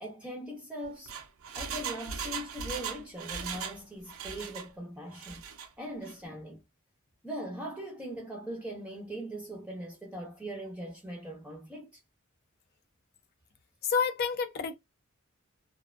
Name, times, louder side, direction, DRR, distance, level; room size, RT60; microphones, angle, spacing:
voice 1, 0.0-1.1 1.5-5.5 5.8-6.6 7.2-12.0, right 1 dB, 5° right, 0.5 m, -40 dB
Engine, 0.8-4.7 5.1-5.7 6.0-6.1, right 6 dB, 75° right, 0.5 m, -38 dB
voice 2, 13.8-14.8, left 6 dB, 45° left, 0.4 m, -29 dB
2.5 x 2.1 x 2.3 m
head